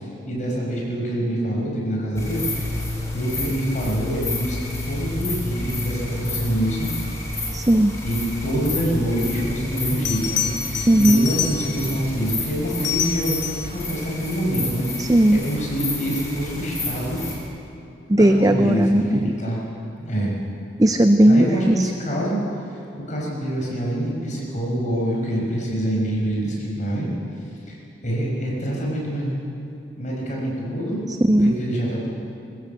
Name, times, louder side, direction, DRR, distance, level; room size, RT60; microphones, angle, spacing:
voice 1, 0.0-2.7 3.1-6.9 8.0-17.2 18.4-19.6 20.1-20.3 21.3-22.4 23.0-27.1 27.7-29.3 30.0-31.1 31.4-32.1, right 1 dB, 40° left, -3 dB, 5.3 m, -26 dB
sound 1, 2.1-17.3, left 2 dB, 15° left, 4.2 m, -30 dB
voice 2, 7.5-8.0 10.9-11.3 15.0-15.4 18.1-19.3 20.8-21.9 31.1-31.6, right 1 dB, 20° right, 8 dB, 0.5 m, -17 dB
Bell, 10.0-12.0 12.7-13.8 16.4-16.7, left 8 dB, 75° left, 2.8 m, -27 dB
21.5 x 15.0 x 8.0 m, 2.7 s
head